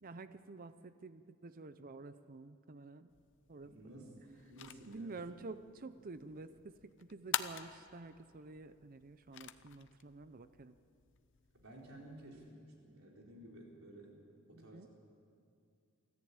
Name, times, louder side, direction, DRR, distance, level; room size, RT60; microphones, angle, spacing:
voice 1, 0.0-3.2 3.5-3.8 4.9-10.8 14.5-14.9, right 3 dB, 40° right, 12 dB, 0.6 m, -50 dB
sound 1, 3.1-12.5, left 10 dB, 55° left, 0.7 m, -47 dB
voice 2, 3.6-5.1 11.5-14.2 14.5-14.9, right 1 dB, 65° right, -1 dB, 4.3 m, -54 dB
24.0 x 14.5 x 8.8 m, 2.4 s
head